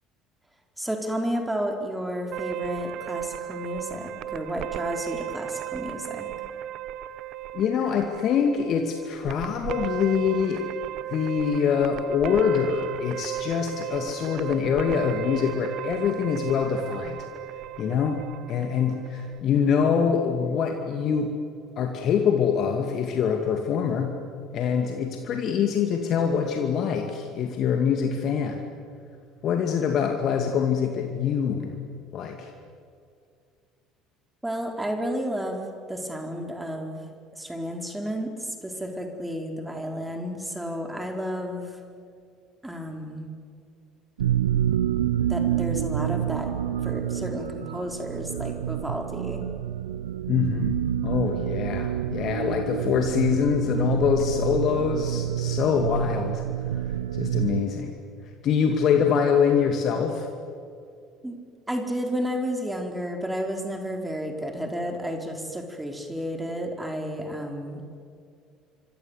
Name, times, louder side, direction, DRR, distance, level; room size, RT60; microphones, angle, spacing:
voice 1, 0.8-6.3 34.4-37.1 37.4-41.6 42.6-43.3 45.3-46.5 46.8-49.4 61.2-61.4 61.7-68.0, equal, 10° right, 3 dB, 4.5 m, -32 dB
sound 1, 2.3-19.4, right 12 dB, 55° right, 1.2 m, -35 dB
voice 2, 7.5-10.6 11.1-17.2 17.8-21.3 21.8-24.2 24.5-28.6 29.4-31.7 32.1-32.5 50.3-50.8 51.0-56.4 56.7-56.8 57.1-58.0 58.4-60.3, left 7 dB, 50° left, 4 dB, 2.4 m, -24 dB
sound 2, 44.2-57.6, right 11 dB, 80° right, 0.7 m, -28 dB
28.5 x 25.0 x 8.3 m, 2.4 s
figure-of-eight pair, 60°, 0 cm